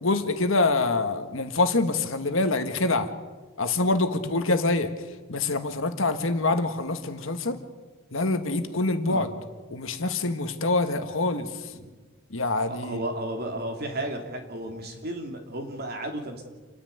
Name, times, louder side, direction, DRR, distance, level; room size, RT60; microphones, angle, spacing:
voice 1, 0.0-3.1 3.6-4.9 5.3-7.6 8.1-9.3 9.7-11.5 12.3-13.0, left 2 dB, 70° left, 8 dB, 1.7 m, -25 dB
voice 2, 12.7-16.4, right 1 dB, 50° right, 3 dB, 3.0 m, -33 dB
28.0 x 10.0 x 9.4 m, 1.3 s
head